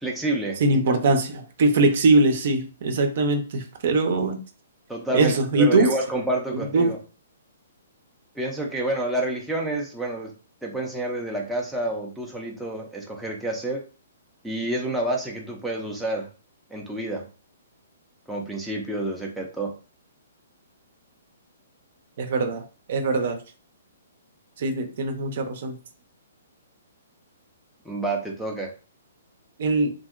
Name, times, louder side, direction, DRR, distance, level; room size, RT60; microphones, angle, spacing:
voice 1, 0.0-0.8 4.2-4.3 4.9-7.0 8.4-10.3 10.6-13.8 14.4-16.3 16.7-17.3 18.3-19.7 27.9-28.7, right 1 dB, ahead, 0.5 m, -29 dB
voice 2, 0.6-4.4 5.1-5.9 6.6-6.9 22.2-22.6 22.9-23.4 24.6-25.7 29.6-29.9, right 3 dB, 55° right, 0.6 m, -21 dB
2.8 x 2.5 x 2.4 m
hypercardioid pair, 155°, 0 cm